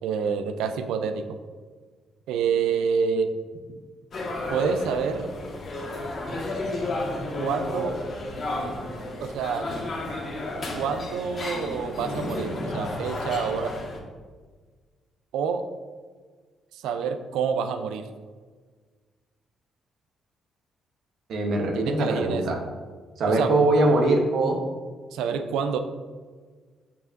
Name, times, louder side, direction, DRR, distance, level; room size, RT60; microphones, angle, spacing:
voice 1, 0.0-1.2 2.3-3.3 4.5-5.3 7.4-8.0 9.2-9.7 10.7-13.7 15.3-15.6 16.7-18.1 21.7-22.4 23.3-23.5 25.1-25.8, right 6 dB, 90° right, 8 dB, 0.4 m, -27 dB
sound 1, 4.1-14.0, left 2 dB, 50° left, 1.5 m, -32 dB
voice 2, 21.3-22.6 23.2-24.6, right 2 dB, 70° right, 1 dB, 0.9 m, -22 dB
6.4 x 5.7 x 2.6 m, 1.5 s
cardioid pair, 90°, 0 cm